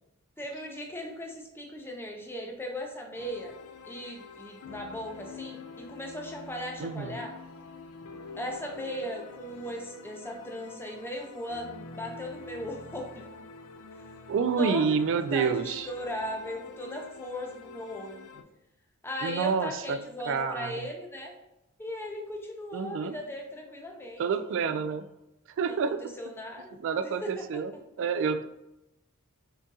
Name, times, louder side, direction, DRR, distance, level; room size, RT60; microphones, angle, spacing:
voice 1, 0.4-3.5 3.8-7.3 8.4-13.3 14.0-14.1 14.5-18.3 19.0-21.3 21.8-24.2 24.6-24.8 25.7-27.4, equal, 10° left, 1 dB, 0.6 m, -38 dB
sound 1, 3.2-18.4, left 4 dB, 75° left, 0.4 m, -46 dB
voice 2, 6.8-7.2 14.3-15.9 19.2-20.0 20.3-20.9 22.7-23.1 24.2-25.1 25.6-26.0 26.8-27.7 28.0-28.4, right 5 dB, 60° right, 11 dB, 0.3 m, -28 dB
3.8 x 3.6 x 2.7 m, 0.89 s
head